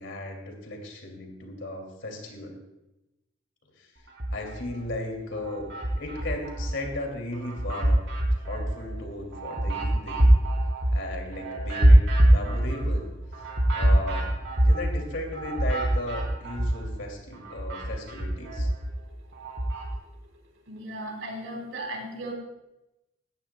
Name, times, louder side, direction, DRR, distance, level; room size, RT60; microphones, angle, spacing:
voice 1, 0.0-2.6 3.7-3.9 4.3-5.7 6.0-8.0 8.3-10.2 10.9-13.1 13.3-13.5 13.7-14.3 14.6-18.7, left 1 dB, 65° left, 2 dB, 2.8 m, -36 dB
sound 1, 4.1-4.9 5.3-6.9 7.3-17.0 17.3-19.9, right 1 dB, 65° right, 3.9 m, -24 dB
voice 2, 20.7-22.3, right 1 dB, 80° right, 1 dB, 3.4 m, -36 dB
18.5 x 14.0 x 2.3 m, 0.95 s
head